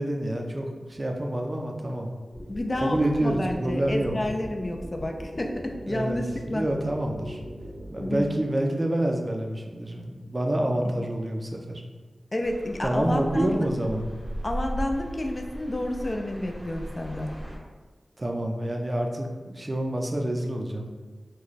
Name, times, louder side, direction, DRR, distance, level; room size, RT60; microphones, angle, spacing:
voice 1, 0.0-2.1 2.8-4.1 5.8-6.2 6.5-7.4 7.9-11.8 12.8-14.1 18.2-20.9, right 1 dB, 35° right, 2 dB, 0.5 m, -27 dB
sound 1, 2.3-8.3, equal, 70° left, 0.8 m, -40 dB
voice 2, 2.5-6.7 8.0-8.3 10.9-11.0 12.3-13.6 14.4-17.3, left 1 dB, 35° left, 3 dB, 0.4 m, -30 dB
sound 2, 12.4-17.6, equal, 10° left, 0.8 m, -37 dB
3.0 x 2.2 x 4.0 m, 1.4 s
wide cardioid pair, 75°, 0 cm